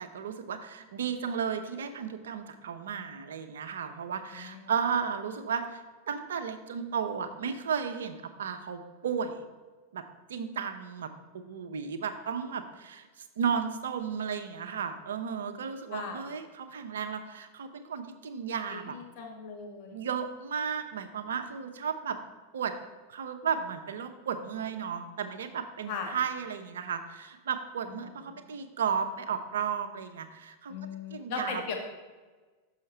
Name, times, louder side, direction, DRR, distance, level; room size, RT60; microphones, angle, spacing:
voice 1, 0.0-9.4 9.9-10.0 10.3-19.0 19.9-22.2 22.5-22.7 23.1-30.7 31.1-31.6, right 7 dB, 65° right, 8 dB, 0.6 m, -34 dB
voice 2, 4.2-4.7 15.9-16.2 18.7-20.1 25.9-26.1 28.0-28.2 30.7-31.7, left 5 dB, 45° left, 2 dB, 1.2 m, -38 dB
6.5 x 5.6 x 4.2 m, 1.3 s
figure-of-eight pair, 90°, 0 cm